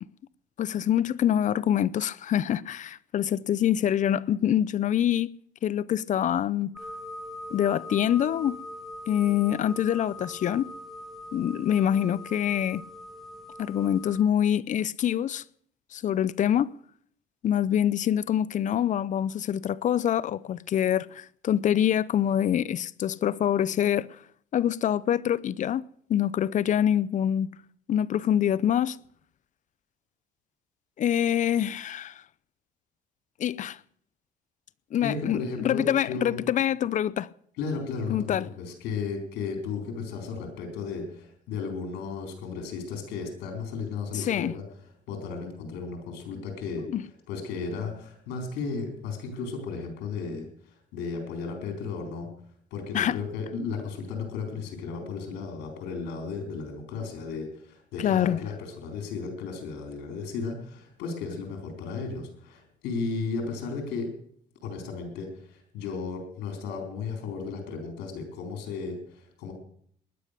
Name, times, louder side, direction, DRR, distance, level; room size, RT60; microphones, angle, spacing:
voice 1, 0.6-6.7 7.5-8.6 9.1-10.6 11.3-12.8 13.6-15.4 15.9-16.7 17.4-24.2 24.5-27.5 27.9-29.0 31.0-32.2 33.4-33.8 34.9-37.3 38.1-38.5 44.1-44.5 46.9-47.0 52.9-53.2 58.0-58.4, left 10 dB, 45° left, 0.6 m, -25 dB
sound 1, 6.8-14.2, left 1 dB, ahead, 2.2 m, -42 dB
voice 2, 35.0-36.4 37.6-44.6 45.1-46.9 47.3-52.3 52.7-64.1 64.6-69.5, left 4 dB, 85° left, 4.3 m, -34 dB
19.5 x 11.0 x 6.7 m
cardioid pair, 110°, 17 cm